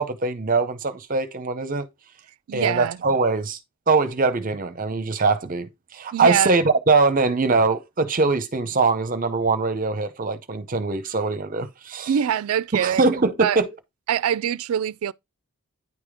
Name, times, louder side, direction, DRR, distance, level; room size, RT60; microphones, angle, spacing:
voice 1, 0.0-1.9 2.5-3.6 3.9-12.1 12.7-13.7, right 3 dB, 40° right, 0.6 m, -22 dB
voice 2, 2.5-3.0 6.1-6.5 12.1-13.0 13.4-13.6 14.1-15.1, right 9 dB, 75° right, 0.3 m, -23 dB
9.5 x 3.5 x 4.9 m
head